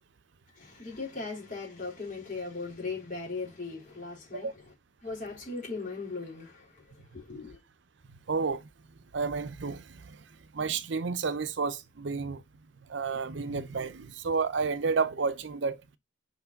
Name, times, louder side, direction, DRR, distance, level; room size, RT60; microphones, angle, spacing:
voice 1, 0.6-4.5 5.0-6.8 7.1-7.6, left 3 dB, 40° left, 3.6 m, -38 dB
voice 2, 8.3-8.7 9.1-10.2 10.5-12.4 12.9-15.8, right 4 dB, 70° right, 0.6 m, -31 dB
5.7 x 4.6 x 4.0 m
head